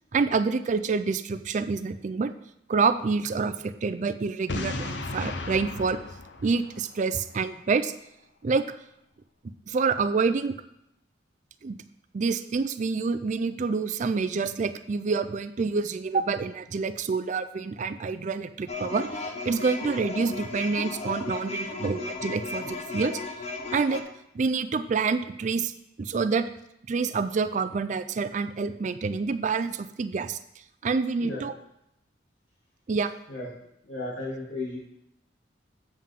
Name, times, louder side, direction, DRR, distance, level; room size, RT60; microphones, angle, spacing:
voice 1, 0.1-2.3 2.7-6.0 6.4-7.9 8.4-8.6 9.7-10.6 11.6-11.8 12.1-23.2 23.7-24.0 24.3-25.7 26.0-26.5 26.9-30.4 30.8-31.5 32.9-33.1, right 4 dB, 40° right, 11 dB, 0.4 m, -27 dB
Boom, 4.5-7.4, left 2 dB, 65° left, 0.7 m, -35 dB
sound 1, 18.7-24.0, left 3 dB, 35° left, 0.8 m, -35 dB
voice 2, 33.8-34.8, left 2 dB, 90° left, -4 dB, 2.7 m, -35 dB
7.5 x 7.5 x 3.6 m, 0.78 s
head